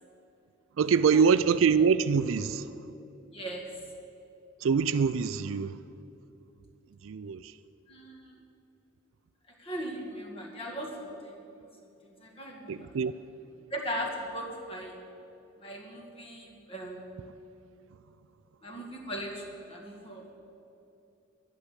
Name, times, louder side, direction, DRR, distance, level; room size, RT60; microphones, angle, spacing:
voice 1, 0.8-2.7 4.6-5.8 7.0-7.5 12.7-13.1, right 6 dB, 70° right, 0.4 m, -24 dB
voice 2, 3.3-3.7 7.9-8.3 9.6-11.4 12.0-12.9 13.7-15.0 15.6-17.2 18.6-20.3, equal, 25° left, 2.0 m, -39 dB
11.5 x 11.0 x 8.5 m
head